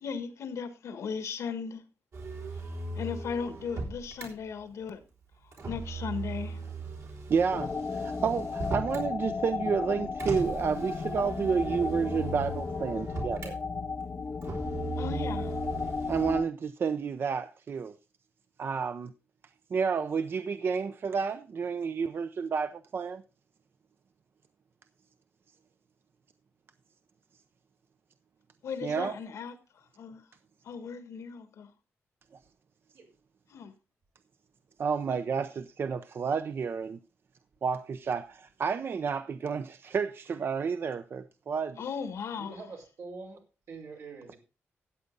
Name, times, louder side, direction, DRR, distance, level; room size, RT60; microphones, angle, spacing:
voice 1, 0.0-1.8 2.9-5.0 5.7-6.6 15.0-15.5 28.6-29.6 30.0-30.2 30.6-31.7 33.5-33.7 41.8-42.6, left 6 dB, 90° left, 1.5 m, -36 dB
Motor vehicle (road), 2.1-4.3 5.5-9.1 10.2-13.5 14.4-16.4, right 3 dB, 70° right, 3.5 m, -38 dB
voice 2, 7.3-13.5 16.1-18.0 18.6-19.1 19.7-23.2 28.8-29.2 34.8-37.0 37.6-41.8, right 6 dB, 50° right, 0.6 m, -30 dB
sound 1, 7.5-16.4, left 4 dB, 35° left, 0.7 m, -34 dB
voice 3, 42.3-43.4 43.7-44.4, right 4 dB, 85° right, 4.8 m, -44 dB
14.0 x 8.3 x 3.9 m
wide cardioid pair, 145°, 5 cm